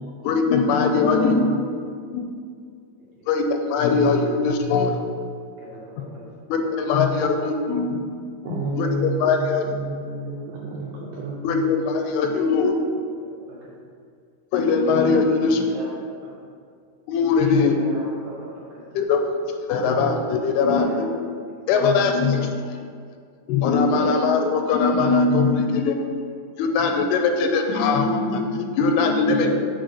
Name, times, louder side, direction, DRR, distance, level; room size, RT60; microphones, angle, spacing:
voice 1, 0.2-1.7 2.1-2.3 3.3-5.0 6.5-8.0 8.8-9.6 11.4-12.9 14.5-15.6 17.1-17.7 18.9-19.2 19.7-21.1 21.7-22.7 23.5-26.1 26.6-29.5, left 4 dB, 85° left, 5 dB, 2.6 m, -21 dB
voice 2, 5.6-6.4 8.8-9.1 12.2-12.3 13.3-13.7 15.3-16.3 17.4-18.8 20.6-20.9 23.8-24.1 26.6-26.9, right 1 dB, 65° right, -6 dB, 2.0 m, -39 dB
voice 3, 8.4-11.8 29.4-29.5, right 2 dB, 85° right, -4 dB, 1.9 m, -31 dB
6.4 x 3.9 x 5.2 m, 2.2 s
omnidirectional pair, 4.5 m